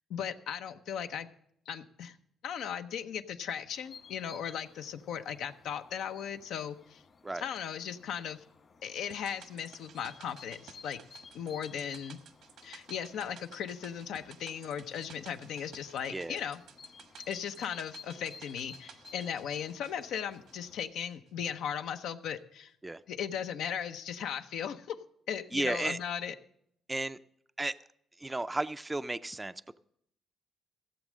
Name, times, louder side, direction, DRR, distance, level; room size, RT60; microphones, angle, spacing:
voice 1, 0.1-1.3 1.7-2.2 2.4-7.0 7.4-8.4 8.8-11.0 11.3-12.2 12.6-16.6 17.3-22.7 23.1-25.0 25.3-26.3, left 8 dB, 80° left, 9 dB, 0.7 m, -37 dB
sound 1, 3.7-20.8, left 5 dB, 50° left, 1.7 m, -56 dB
sound 2, 9.1-21.5 21.7-21.8, right 8 dB, 80° right, 1.1 m, -55 dB
voice 2, 25.5-26.0 26.9-27.2 27.6-27.8 28.2-29.8, right 2 dB, 15° right, 11 dB, 0.4 m, -34 dB
15.5 x 7.4 x 6.2 m, 0.71 s
cardioid pair, 90°, 0 cm